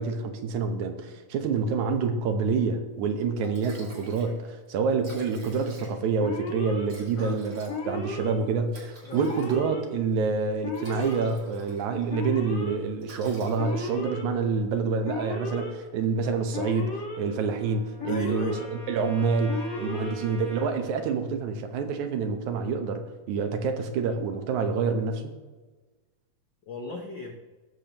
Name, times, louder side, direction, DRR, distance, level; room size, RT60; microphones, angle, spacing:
voice 1, 0.0-25.3, right 5 dB, 80° right, 6 dB, 2.3 m, -27 dB
Liquid, 3.1-3.2 3.4-4.4 4.6-4.7 4.9-6.2 6.9-9.9 10.5-12.1 12.4-12.6 13.0-14.1, right 1 dB, 35° right, 2.4 m, -48 dB
Alarm, 6.2-6.9 7.7-8.3 9.1-9.8 10.6-11.3 12.1-12.8 13.6-14.2 15.0-15.7 16.5-17.2 18.0-18.7 19.5-20.1, left 2 dB, 45° left, 1.6 m, -34 dB
Trumpet, 16.2-20.8, right 2 dB, 60° right, 0.7 m, -47 dB
voice 2, 18.1-18.6 19.9-20.2 26.7-27.3, left 3 dB, 85° left, 1 dB, 1.0 m, -37 dB
19.0 x 6.8 x 2.9 m, 1.3 s
omnidirectional pair, 3.4 m